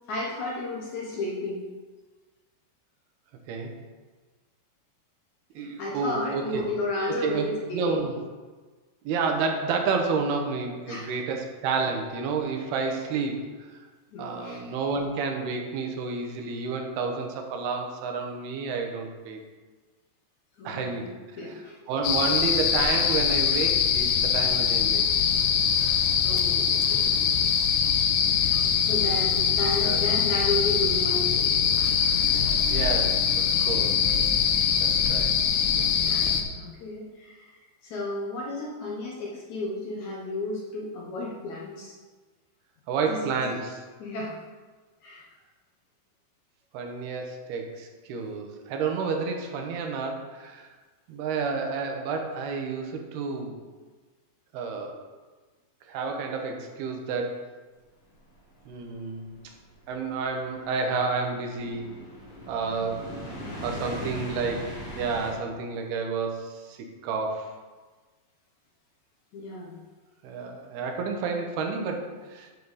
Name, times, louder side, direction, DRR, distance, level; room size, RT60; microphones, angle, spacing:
voice 1, 0.1-1.6 5.6-8.0 10.9-11.1 14.1-14.6 20.6-21.1 21.4-21.8 22.1-22.2 26.2-27.1 27.7-27.8 28.3-28.6 28.9-31.6 36.1-42.0 43.1-43.6 44.0-44.4 45.0-45.3 64.0-64.3 69.3-69.8, left 2 dB, 70° left, -3 dB, 1.9 m, -33 dB
voice 2, 5.6-6.6 7.1-8.2 9.0-13.9 14.2-19.4 20.6-21.1 21.9-25.1 29.8-30.0 32.7-34.0 34.8-35.4 42.9-43.8 46.7-50.7 51.1-53.6 54.5-55.0 55.9-57.4 58.7-59.3 59.9-61.9 62.5-63.1 63.6-66.8 67.0-67.5 70.2-72.5, right 4 dB, 85° right, 3 dB, 3.0 m, -30 dB
sound 1, 22.0-36.4, left 7 dB, 90° left, 1.7 m, -23 dB
sound 2, 58.3-65.3, equal, 45° left, 3.7 m, -40 dB
9.0 x 6.7 x 4.1 m, 1.3 s
omnidirectional pair, 4.4 m